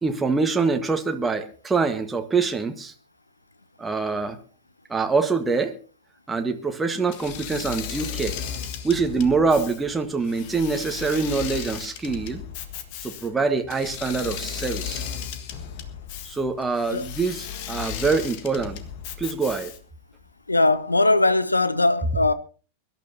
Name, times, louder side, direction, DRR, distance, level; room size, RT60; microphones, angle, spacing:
voice 1, 0.0-2.9 3.8-4.4 4.9-5.7 6.3-8.4 8.8-12.4 13.0-15.0 16.2-18.8 19.2-19.7, right 4 dB, 10° right, 1.4 m, -24 dB
Engine / Mechanisms, 7.1-20.0, left 8 dB, 45° left, 1.7 m, -35 dB
voice 2, 20.5-22.3, left 2 dB, 80° left, 0.9 m, -20 dB
24.0 x 12.5 x 2.8 m
figure-of-eight pair, 90°, 0 cm